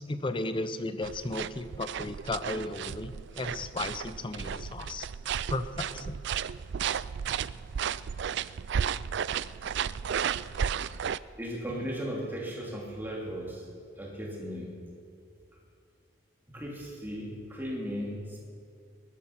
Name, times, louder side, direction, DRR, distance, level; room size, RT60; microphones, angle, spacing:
voice 1, 0.0-5.0 5.5-6.2, left 2 dB, 25° left, 11 dB, 0.6 m, -35 dB
arrossegant peus M y S, 1.0-11.2, right 8 dB, 55° right, 0.3 m, -33 dB
voice 2, 11.4-13.7 14.0-14.8 16.5-18.4, equal, 10° right, -2 dB, 2.8 m, -37 dB
19.5 x 12.0 x 5.9 m, 2.5 s
head